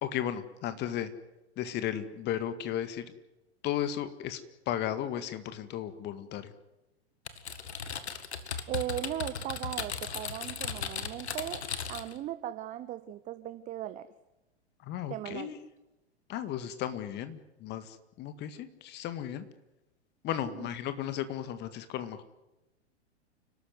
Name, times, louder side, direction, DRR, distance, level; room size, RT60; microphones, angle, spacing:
voice 1, 0.0-1.1 1.6-3.0 3.6-4.4 4.7-6.5 14.8-15.6 16.3-19.4 20.2-22.2, left 10 dB, 30° left, 11 dB, 1.9 m, -35 dB
Typing, 7.3-12.2, left 6 dB, 70° left, 2.0 m, -37 dB
voice 2, 8.7-14.1 15.1-15.5 20.5-20.7, right 12 dB, 20° right, 13 dB, 0.7 m, -38 dB
29.5 x 13.0 x 9.6 m, 0.98 s
figure-of-eight pair, 100°, 35 cm